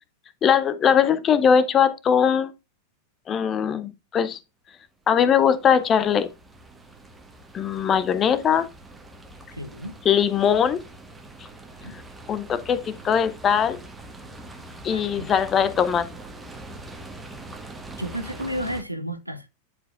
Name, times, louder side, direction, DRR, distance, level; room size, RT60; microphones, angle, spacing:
voice 1, 0.4-2.5 3.3-4.4 5.1-6.3 7.5-8.7 10.0-10.8 12.3-13.8 14.8-16.1, left 7 dB, 25° left, 0.7 m, -20 dB
sound 1, 5.2-18.8, right 2 dB, 10° right, 1.4 m, -43 dB
voice 2, 9.5-10.0 11.8-11.9 14.8-15.3 18.0-19.5, equal, 90° right, 0.8 m, -32 dB
10.5 x 4.8 x 2.4 m
figure-of-eight pair, 90°, 0 cm